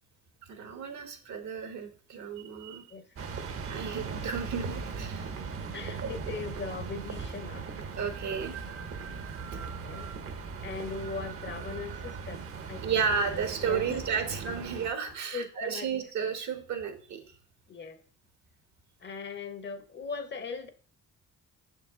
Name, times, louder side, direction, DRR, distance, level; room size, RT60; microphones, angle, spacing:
voice 1, 0.5-2.9 3.7-5.3 6.0-6.1 8.0-8.6 12.8-17.2, right 6 dB, 70° right, 6 dB, 1.2 m, -33 dB
sound 1, 3.2-14.9, right 5 dB, 50° right, 0.8 m, -39 dB
voice 2, 5.7-7.7 9.6-10.1 10.6-12.4 12.7-13.0 13.6-14.0 14.3-14.4 15.3-15.9 17.7-18.0 19.0-20.7, left 4 dB, 35° left, 10 dB, 0.7 m, -39 dB
6.4 x 4.6 x 3.6 m, 0.43 s
cardioid pair, 90°, 30 cm